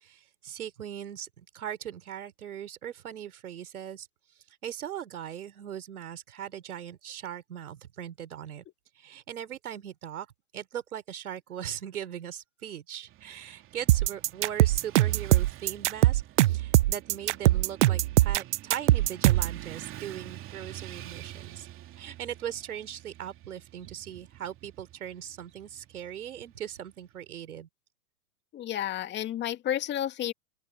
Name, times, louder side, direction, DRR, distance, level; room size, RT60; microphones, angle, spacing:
voice 1, 0.0-4.1 4.6-8.6 9.0-10.3 10.5-21.7 22.0-27.7, right 10 dB, 70° right, 4.0 m, -39 dB
Motorcycle / Traffic noise roadway noise, 13.1-27.2, right 14 dB, 25° right, 3.2 m, -48 dB
sound 1, 13.9-19.6, right 16 dB, 50° right, 0.7 m, -22 dB
voice 2, 28.5-30.3, left 11 dB, 25° left, 2.4 m, -31 dB
open air
hypercardioid pair, 120°, 45 cm